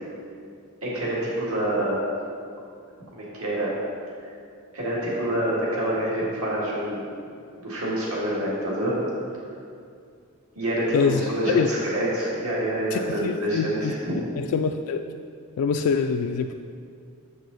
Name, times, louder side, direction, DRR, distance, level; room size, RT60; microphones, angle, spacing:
voice 1, 0.8-2.0 3.1-3.8 4.7-7.1 7.6-9.0 10.6-14.2, right 1 dB, 75° right, -6 dB, 1.9 m, -27 dB
voice 2, 10.9-11.3 11.5-11.7 12.9-13.9 14.4-15.0 15.6-16.5, left 5 dB, 75° left, 5 dB, 0.3 m, -24 dB
7.2 x 6.3 x 4.0 m, 2.3 s
head